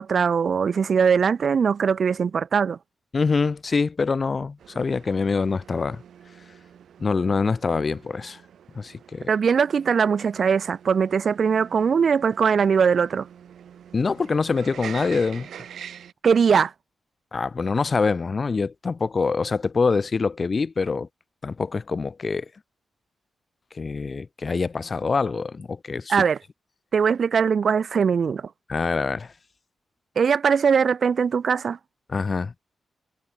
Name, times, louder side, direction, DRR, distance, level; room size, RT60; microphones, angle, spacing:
voice 1, 0.0-2.8 9.3-13.3 16.2-16.7 26.1-26.4 26.9-28.5 30.2-31.8, right 6 dB, 45° right, 0.7 m, -21 dB
voice 2, 3.1-6.0 7.0-8.4 8.7-9.3 13.9-15.5 17.3-21.1 21.4-22.5 23.7-26.2 28.7-29.3 32.1-32.5, left 4 dB, 30° left, 0.9 m, -25 dB
sound 1, 4.6-16.1, right 9 dB, 75° right, 4.2 m, -45 dB
wide cardioid pair, 175°, 0 cm